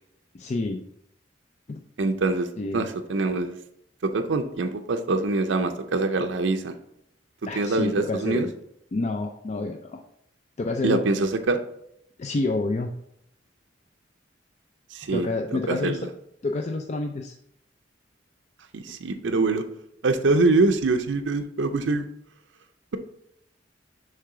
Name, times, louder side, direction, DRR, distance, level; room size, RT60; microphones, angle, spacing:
voice 1, 0.3-0.8 1.7-1.8 2.6-2.9 7.5-8.5 8.9-10.0 10.6-11.0 12.2-12.9 15.1-16.1 16.4-17.3, left 3 dB, 40° left, 4 dB, 0.4 m, -28 dB
voice 2, 2.0-2.5 2.7-3.6 4.0-6.7 7.5-8.5 10.8-11.6 14.9-16.1 18.7-19.6 20.0-22.0, right 3 dB, 85° right, 6 dB, 0.6 m, -24 dB
6.5 x 3.4 x 4.8 m, 0.75 s
head